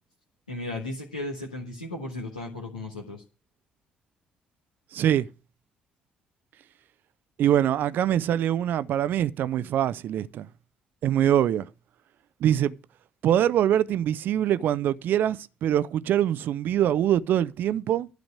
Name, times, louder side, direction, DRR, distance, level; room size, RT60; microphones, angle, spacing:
voice 1, 0.5-3.2, left 2 dB, 85° left, 1.6 m, -35 dB
voice 2, 4.9-5.3 7.4-10.5 11.0-11.7 12.4-12.7 13.2-18.1, right 11 dB, 55° right, 0.6 m, -24 dB
11.5 x 5.1 x 8.5 m
figure-of-eight pair, 45°, 4 cm